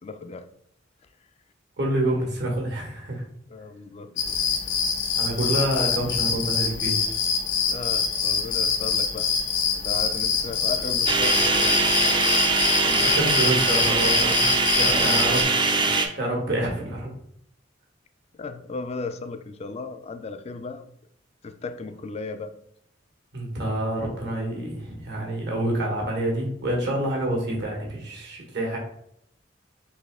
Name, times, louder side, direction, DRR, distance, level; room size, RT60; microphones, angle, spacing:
voice 1, 0.0-0.5 3.5-4.4 7.7-9.3 9.7-12.3 12.8-13.2 18.4-20.8 21.4-22.5, left 4 dB, 35° left, 9 dB, 0.4 m, -36 dB
voice 2, 1.8-3.2 5.2-7.1 13.0-15.4 16.1-17.1 23.3-28.8, right 1 dB, 65° right, -1 dB, 1.4 m, -27 dB
sound 1, 4.2-15.4, left 6 dB, 80° left, 0.8 m, -25 dB
sound 2, 11.1-16.1, right 3 dB, 25° right, 0.5 m, -22 dB
4.0 x 3.1 x 3.6 m, 0.70 s
head